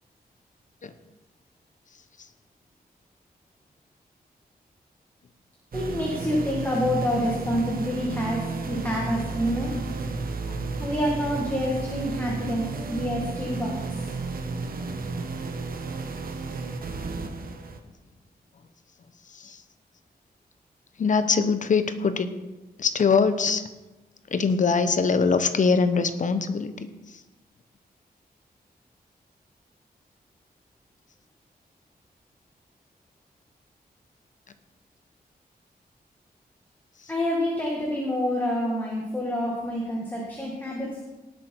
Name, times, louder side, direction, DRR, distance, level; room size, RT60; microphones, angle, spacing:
voice 1, 5.7-9.8 10.8-14.1 37.1-41.0, equal, 10° left, -3 dB, 2.0 m, -27 dB
sound 1, 5.7-17.8, right 3 dB, 65° right, 1.2 m, -32 dB
voice 2, 19.3-19.6 21.0-22.3 22.8-23.6 24.3-27.2, left 5 dB, 50° left, 10 dB, 0.9 m, -23 dB
18.0 x 7.8 x 4.6 m, 1.1 s
wide cardioid pair, 170°, 16 cm